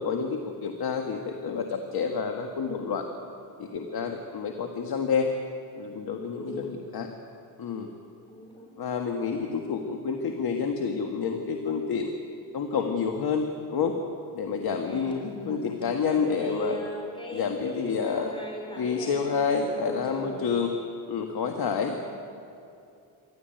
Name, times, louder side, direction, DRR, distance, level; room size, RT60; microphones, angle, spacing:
voice 1, 0.0-3.1 3.6-5.3 5.8-7.1 7.6-7.9 8.8-12.1 12.5-14.0 14.3-16.8 17.3-18.3 18.8-20.7 21.1-22.0, left 5 dB, 55° left, 4 dB, 1.8 m, -29 dB
voice 2, 6.3-6.8 8.3-8.7 14.8-19.4 19.7-20.5 21.8-22.1, equal, 10° left, -1 dB, 5.5 m, -39 dB
27.5 x 12.5 x 9.1 m, 2.6 s
cardioid pair, 95°, 43 cm